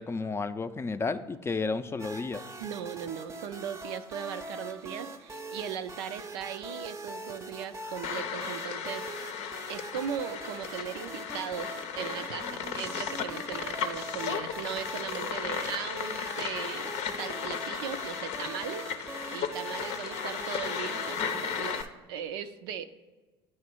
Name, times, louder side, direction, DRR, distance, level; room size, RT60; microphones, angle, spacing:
voice 1, 0.0-2.4, left 4 dB, 20° left, 10 dB, 0.4 m, -32 dB
sound 1, 2.0-21.9, right 2 dB, 20° right, 0.6 m, -43 dB
voice 2, 2.6-9.1 9.7-16.9 17.2-18.8 19.3-21.8 22.1-22.9, right 8 dB, 75° right, 10 dB, 0.4 m, -38 dB
sound 2, 8.0-21.8, left 7 dB, 65° left, 0.6 m, -35 dB
8.9 x 3.1 x 6.1 m, 1.3 s
hypercardioid pair, 70°, 13 cm